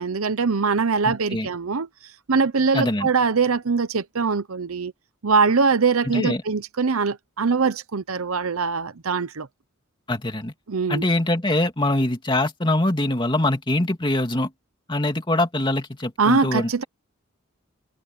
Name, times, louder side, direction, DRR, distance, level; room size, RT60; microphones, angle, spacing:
voice 1, 0.0-1.9 2.3-4.9 5.2-9.5 10.7-11.0 16.2-16.8, right 5 dB, 90° right, 0.8 m, -22 dB
voice 2, 1.0-1.5 2.7-3.1 6.1-6.4 10.1-10.5 10.9-14.5 14.9-16.8, left 1 dB, 25° left, 2.5 m, -23 dB
head